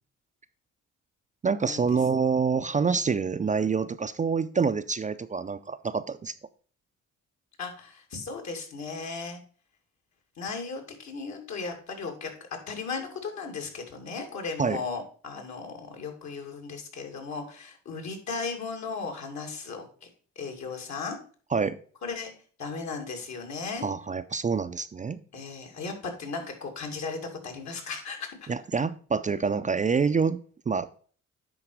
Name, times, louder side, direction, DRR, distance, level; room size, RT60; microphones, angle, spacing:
voice 1, 1.4-6.3 14.6-14.8 21.5-21.8 23.8-25.2 28.5-31.0, right 5 dB, 25° right, 11 dB, 0.4 m, -27 dB
voice 2, 7.6-9.4 10.4-12.3 12.7-20.1 20.4-21.2 22.0-22.3 22.6-23.9 25.3-28.5, left 4 dB, 65° left, 2 dB, 2.5 m, -36 dB
10.0 x 4.0 x 4.7 m, 0.43 s
cardioid pair, 90°, 30 cm